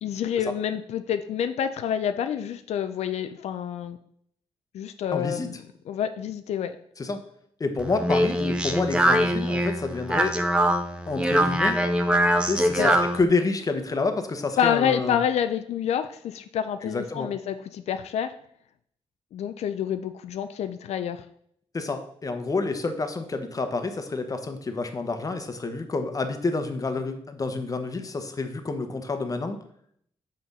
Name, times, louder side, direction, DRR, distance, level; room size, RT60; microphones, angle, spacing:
voice 1, 0.0-4.0 4.7-5.6 5.9-6.8 12.8-12.9 14.6-18.3 19.3-21.2, left 9 dB, 90° left, 9 dB, 0.4 m, -28 dB
voice 2, 5.1-5.5 7.0-7.2 7.6-10.4 11.1-11.8 12.4-15.2 16.8-17.3 21.7-29.6, left 3 dB, 35° left, 7 dB, 0.9 m, -28 dB
Speech, 7.8-13.2, equal, 10° right, 0.8 m, -23 dB
6.2 x 4.3 x 5.3 m, 0.67 s
cardioid pair, 100°, 11 cm